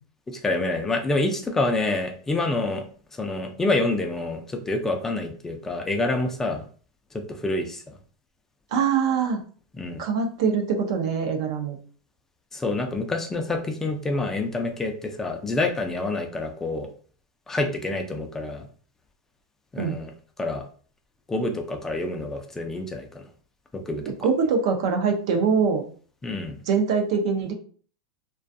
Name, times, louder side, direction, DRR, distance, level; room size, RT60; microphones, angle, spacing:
voice 1, 0.3-2.8 3.2-6.6 7.1-7.8 9.8-10.0 12.5-16.9 17.5-18.6 19.7-20.1 20.4-20.6 21.3-23.2 23.7-24.0 26.2-26.6, left 2 dB, 15° left, 4 dB, 0.4 m, -27 dB
voice 2, 8.7-9.4 10.0-11.8 19.8-20.0 24.2-25.8 26.7-27.5, right 5 dB, 65° right, 3 dB, 0.6 m, -23 dB
2.3 x 2.3 x 2.5 m, 0.44 s
supercardioid pair, 125°, 3 cm